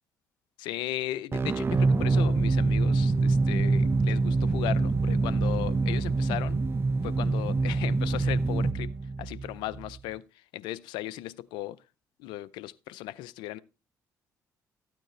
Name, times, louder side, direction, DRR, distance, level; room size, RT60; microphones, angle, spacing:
voice 1, 0.6-6.6 7.0-8.9 9.2-11.8 12.2-13.6, left 15 dB, 80° left, 0.5 m, -36 dB
sound 1, 1.3-10.0, right 3 dB, 30° right, 0.6 m, -25 dB
12.5 x 9.0 x 3.2 m
supercardioid pair, 65°, 8 cm